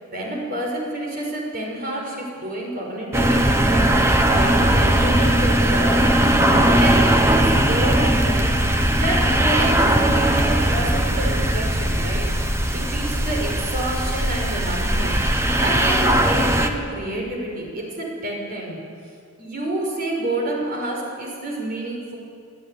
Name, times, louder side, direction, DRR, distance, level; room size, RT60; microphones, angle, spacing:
voice 1, 0.1-6.0 6.5-8.5 9.0-12.3 12.7-18.8 19.4-22.2, right 1 dB, 40° right, -1 dB, 5.7 m, -28 dB
sound 1, 3.1-16.7, right 1 dB, 10° right, 1.1 m, -19 dB
24.0 x 12.5 x 9.7 m, 2.3 s
head